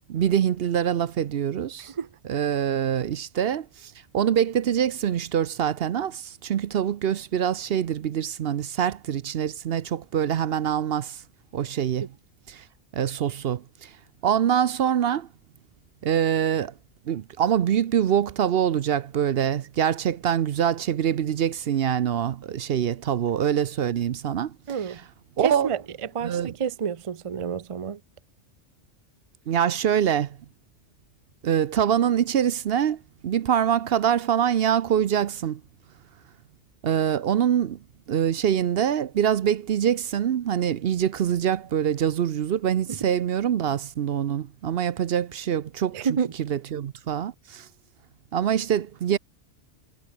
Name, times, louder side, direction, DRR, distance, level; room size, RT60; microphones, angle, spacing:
voice 1, 0.1-1.9 2.2-11.2 11.5-12.1 12.5-12.6 12.9-13.9 14.2-15.3 16.0-16.7 17.1-25.0 25.4-25.7 26.2-26.5 29.5-30.4 31.4-35.6 36.8-37.8 38.1-46.1 46.4-47.7 48.3-49.2, right 9 dB, 60° right, 0.8 m, -24 dB
voice 2, 24.7-25.0 25.4-28.0 42.9-43.0 45.9-46.3, right 7 dB, 35° right, 0.6 m, -29 dB
omnidirectional pair, 1.2 m